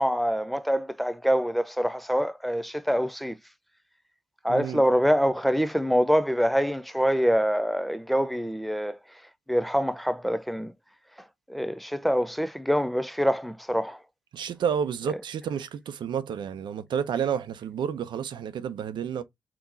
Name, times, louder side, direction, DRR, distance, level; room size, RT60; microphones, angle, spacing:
voice 1, 0.0-3.4 4.4-9.0 9.5-10.7 11.5-14.0 15.1-15.2, equal, ahead, 0.5 m, -25 dB
voice 2, 4.5-4.8 14.3-19.2, right 8 dB, 75° right, 0.5 m, -30 dB
3.6 x 3.0 x 2.6 m
supercardioid pair, 45°, 8 cm